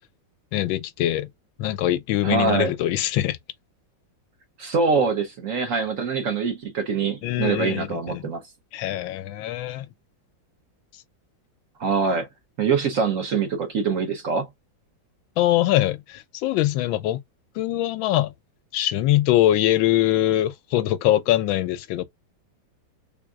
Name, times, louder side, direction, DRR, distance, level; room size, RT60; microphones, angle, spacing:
voice 1, 0.5-1.3 1.6-3.4 7.2-8.2 8.7-9.8 15.4-17.2 17.6-18.3 18.7-22.0, left 13 dB, 85° left, 1.3 m, -22 dB
voice 2, 2.2-2.7 4.6-8.4 11.8-12.3 12.6-14.5, right 5 dB, 60° right, 0.9 m, -24 dB
3.5 x 3.5 x 2.3 m
omnidirectional pair, 2.1 m